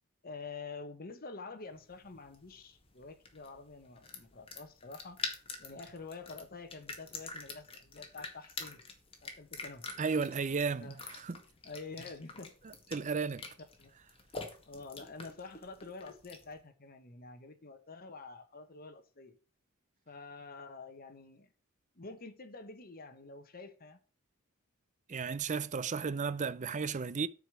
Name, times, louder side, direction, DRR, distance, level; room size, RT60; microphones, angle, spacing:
voice 1, 0.2-5.2 5.6-8.8 9.2-9.9 10.8-11.0 11.6-12.6 13.8-13.9 14.7-19.4 20.1-21.5 21.9-24.0, left 3 dB, 45° left, 1.2 m, -48 dB
sound 1, 1.7-16.6, left 4 dB, 25° left, 2.0 m, -47 dB
voice 2, 10.0-11.4 12.9-13.5 25.1-27.3, right 5 dB, 35° right, 0.5 m, -34 dB
9.1 x 5.0 x 7.5 m
head